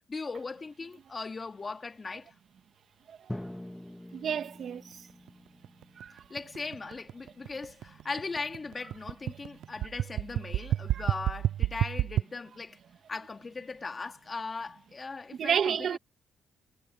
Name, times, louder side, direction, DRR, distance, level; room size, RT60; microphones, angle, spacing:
voice 1, 0.1-2.3 6.3-12.8 13.1-16.0, left 4 dB, 30° left, 2.5 m, -39 dB
Drum, 3.3-7.1, left 1 dB, 5° left, 1.8 m, -45 dB
voice 2, 4.1-5.1 6.0-6.2 10.9-11.0 15.4-16.0, right 8 dB, 60° right, 1.9 m, -31 dB
sound 1, 4.9-12.2, right 12 dB, 80° right, 0.4 m, -30 dB
cardioid pair, 90°, 0 cm